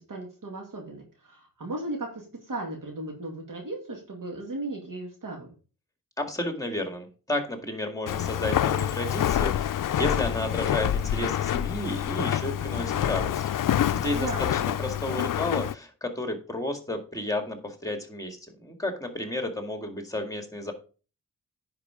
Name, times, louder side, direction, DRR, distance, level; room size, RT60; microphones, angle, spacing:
voice 1, 0.0-5.5 14.1-14.5, right 2 dB, 70° right, 0 dB, 2.1 m, -36 dB
voice 2, 6.2-13.4 13.9-20.7, left 1 dB, 10° left, 5 dB, 2.0 m, -32 dB
Walk footsteps, 8.1-15.7, left 10 dB, 70° left, 0.5 m, -27 dB
10.0 x 4.8 x 4.9 m, 0.36 s
wide cardioid pair, 100°, 34 cm